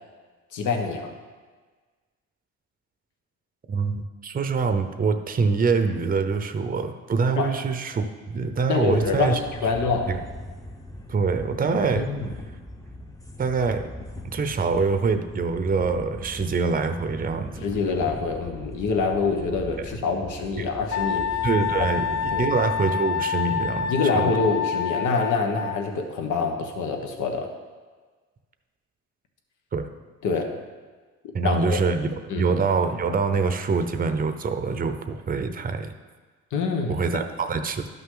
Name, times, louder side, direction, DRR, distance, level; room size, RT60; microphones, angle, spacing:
voice 1, 0.5-1.1 7.3-7.5 8.7-10.1 11.9-12.3 17.6-21.2 22.3-22.5 23.9-27.5 30.2-30.5 31.4-31.8 32.3-32.5 36.5-37.0, left 4 dB, 75° left, 3 dB, 1.2 m, -25 dB
voice 2, 3.7-9.4 10.1-10.2 11.1-12.1 13.4-13.9 14.3-17.6 20.6-20.7 21.4-24.3 29.7-29.9 31.3-35.9 36.9-37.9, right 4 dB, 30° right, 8 dB, 0.7 m, -25 dB
sound 1, 9.0-23.0, left 1 dB, 10° left, 0.8 m, -40 dB
Wind instrument woodwind instrument, 20.9-25.9, left 7 dB, 60° left, 0.6 m, -27 dB
12.0 x 5.8 x 3.9 m, 1.4 s
cardioid pair, 90°, 30 cm